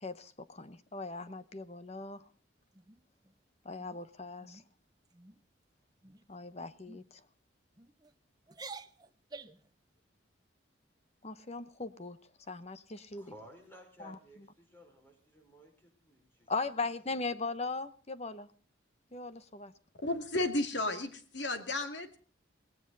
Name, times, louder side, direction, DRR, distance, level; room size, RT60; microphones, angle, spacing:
voice 1, 0.0-2.2 3.6-4.6 6.3-7.0 11.2-12.2 12.5-13.3 14.0-14.5 16.5-18.5 19.1-19.7, left 3 dB, 30° left, 13 dB, 1.0 m, -39 dB
sound 1, 2.7-3.3 3.8-4.0 4.4-4.7 5.0-5.4 6.0-6.4 6.9-7.0 7.8-8.1 8.5-9.7, right 4 dB, 20° right, 0.8 m, -49 dB
voice 2, 13.0-16.5 16.8-16.9, equal, 10° left, 3 dB, 5.3 m, -56 dB
voice 3, 20.0-22.2, left 2 dB, 60° left, 8 dB, 2.5 m, -33 dB
18.5 x 17.0 x 4.0 m, 0.42 s
head